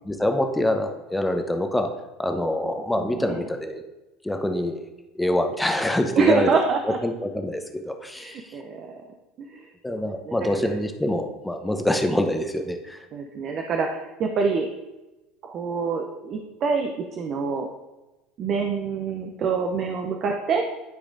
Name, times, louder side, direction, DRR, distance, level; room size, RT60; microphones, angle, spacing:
voice 1, 0.0-1.9 2.2-3.8 4.2-4.8 5.2-6.5 7.0-8.5 9.8-13.0, left 1 dB, 10° left, 5 dB, 0.8 m, -25 dB
voice 2, 3.0-3.4 6.2-7.0 8.1-9.0 9.5-9.7 10.0-10.5 13.1-14.7 15.4-17.7 18.4-20.6, right 4 dB, 45° right, 3 dB, 0.7 m, -26 dB
11.5 x 5.0 x 2.6 m, 1.1 s
hypercardioid pair, 70°, 0 cm